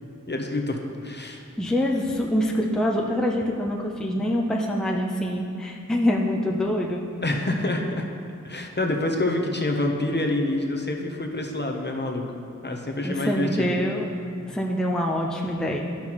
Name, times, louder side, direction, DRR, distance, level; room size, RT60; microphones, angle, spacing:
voice 1, 0.3-1.4 7.2-8.0 8.4-12.2 12.6-13.8, left 2 dB, 35° left, 1 dB, 0.8 m, -27 dB
voice 2, 1.6-7.0 13.0-14.1 14.5-15.8, equal, ahead, 0 dB, 0.6 m, -25 dB
11.5 x 5.7 x 3.0 m, 2.5 s
wide cardioid pair, 55°, 31 cm